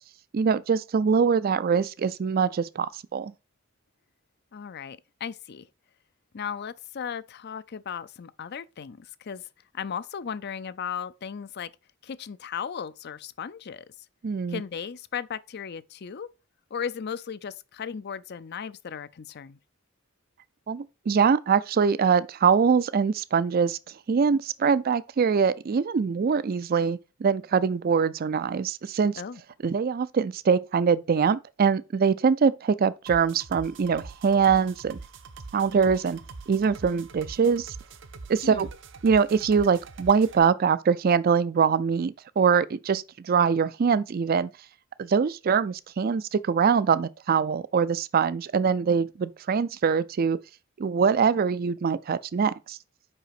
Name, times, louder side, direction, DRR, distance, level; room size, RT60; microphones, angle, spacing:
voice 1, 0.3-3.3 14.2-14.6 20.7-23.8 24.1-29.2 29.6-35.0 35.5-36.2 36.5-37.7 38.3-38.7 39.0-44.5 45.0-50.4 50.8-52.8, right 6 dB, 45° right, 0.4 m, -23 dB
voice 2, 4.5-5.7 6.3-9.4 9.7-11.7 12.0-13.8 14.5-16.3 16.7-19.6 29.2-29.4 38.4-38.7, left 7 dB, 55° left, 0.5 m, -36 dB
sound 1, 33.1-40.4, right 3 dB, 65° right, 0.8 m, -44 dB
5.5 x 5.0 x 5.7 m
head